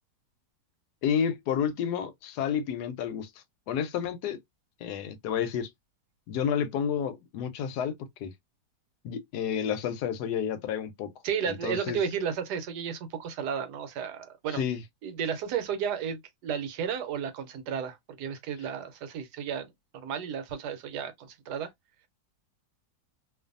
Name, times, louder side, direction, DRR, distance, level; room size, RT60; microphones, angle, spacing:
voice 1, 1.0-3.3 3.7-4.4 4.8-5.7 6.3-7.9 8.2-8.3 9.0-11.1 11.5-12.0 14.5-14.8, left 8 dB, 80° left, 1.2 m, -30 dB
voice 2, 11.2-14.6 15.0-21.7, right 7 dB, 80° right, 1.2 m, -33 dB
2.6 x 2.5 x 2.5 m
omnidirectional pair, 1.8 m